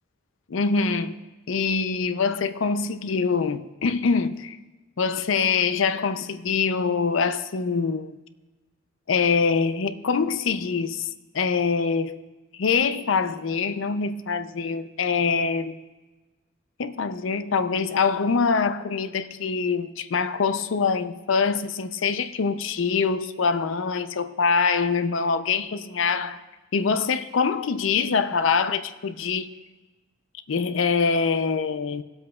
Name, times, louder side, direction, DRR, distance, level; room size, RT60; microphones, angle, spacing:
voice 1, 0.5-1.2 1.5-4.6 5.0-8.2 9.1-11.1 11.3-12.2 12.5-15.8 16.8-26.4 26.7-29.5 30.5-32.0, left 5 dB, 80° left, 0.5 m, -24 dB
20.0 x 7.8 x 2.3 m
head